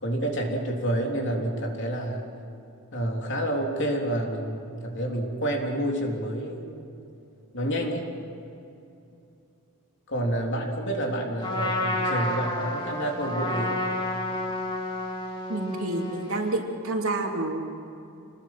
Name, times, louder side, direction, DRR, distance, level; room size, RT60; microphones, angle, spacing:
voice 1, 0.0-2.3 2.9-6.8 7.5-8.1 10.1-13.9, right 1 dB, 55° left, 0 dB, 3.7 m, -29 dB
Trumpet, 11.4-16.6, left 1 dB, 20° left, 3.1 m, -30 dB
voice 2, 15.5-17.7, right 2 dB, 70° right, 1 dB, 3.2 m, -29 dB
28.0 x 20.5 x 6.1 m, 2.8 s
head